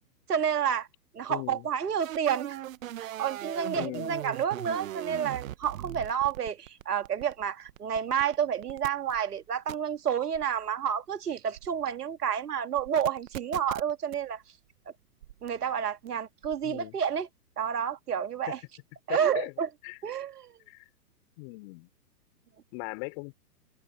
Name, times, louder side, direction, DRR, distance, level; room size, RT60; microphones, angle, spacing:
voice 1, 0.3-0.9 1.1-2.6 3.0-14.4 15.4-17.3 17.6-18.6 19.1-19.7 20.0-20.5, right 8 dB, 75° right, 2.1 m, -30 dB
voice 2, 1.3-1.7 3.7-4.2 16.6-16.9 19.1-19.5 19.8-20.0 20.7-20.8 21.4-21.9 22.7-23.3, left 31 dB, 35° left, 4.0 m, -39 dB
sound 1, 2.0-8.3 8.6-9.2 9.7-9.8 10.3-10.6 11.6-11.8 12.8-14.2 15.2-15.5 16.1-16.2 16.4-16.7, right 13 dB, 55° right, 1.2 m, -40 dB
hypercardioid pair, 125°, 48 cm